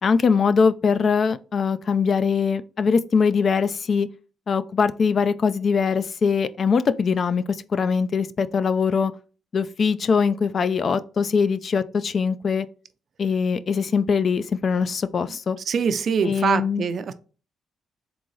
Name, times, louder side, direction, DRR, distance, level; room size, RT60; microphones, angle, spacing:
voice 1, 0.0-4.1 4.5-9.1 9.5-12.7 13.2-15.6 16.2-16.8, left 5 dB, 50° left, 0.3 m, -22 dB
voice 2, 15.7-17.1, right 6 dB, 55° right, 0.4 m, -23 dB
3.8 x 3.6 x 3.1 m
cardioid pair, 90°, 0 cm